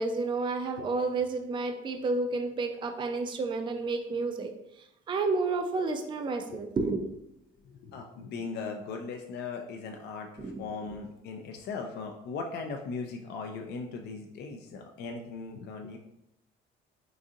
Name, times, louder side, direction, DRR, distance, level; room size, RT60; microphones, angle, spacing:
voice 1, 0.0-4.5 5.1-7.0 10.4-10.6, right 3 dB, 25° right, 6 dB, 0.4 m, -30 dB
voice 2, 7.6-16.0, left 4 dB, 55° left, 3 dB, 0.4 m, -39 dB
3.8 x 2.5 x 2.5 m, 0.82 s
cardioid pair, 95°, 21 cm